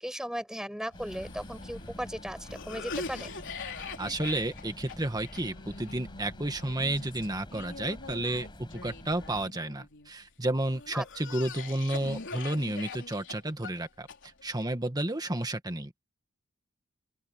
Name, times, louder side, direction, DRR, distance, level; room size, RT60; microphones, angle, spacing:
voice 1, 0.0-3.3 10.9-11.0, equal, 5° right, 6.6 m, -36 dB
Cough, 0.9-10.1 10.7-14.6, left 4 dB, 55° left, 4.0 m, -43 dB
sound 1, 0.9-9.5, equal, 20° left, 8.0 m, -47 dB
voice 2, 4.0-14.1 14.4-15.9, right 1 dB, 20° right, 1.8 m, -31 dB
open air
head